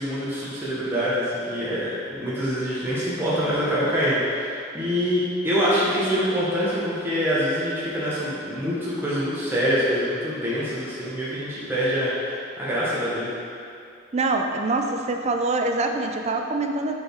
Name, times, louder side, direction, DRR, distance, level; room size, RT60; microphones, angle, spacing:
voice 1, 0.0-13.3, equal, 10° right, -10 dB, 1.2 m, -25 dB
voice 2, 14.1-17.0, right 3 dB, 35° right, 4 dB, 0.5 m, -24 dB
6.1 x 4.7 x 4.5 m, 2.5 s
head